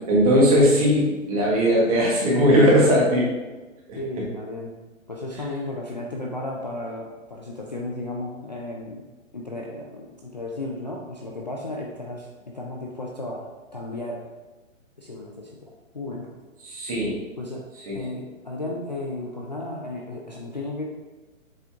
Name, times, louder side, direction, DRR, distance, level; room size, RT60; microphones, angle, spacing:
voice 1, 0.1-3.3 3.9-4.0 16.6-17.2 17.9-18.0, equal, 25° right, -4 dB, 1.4 m, -19 dB
voice 2, 4.0-4.7 5.1-9.0 9.3-13.5 13.7-14.2 15.0-16.3 17.4-17.6 17.9-20.8, left 2 dB, 35° left, -2 dB, 0.4 m, -34 dB
7.5 x 3.8 x 3.5 m, 1.2 s
hypercardioid pair, 170°, 41 cm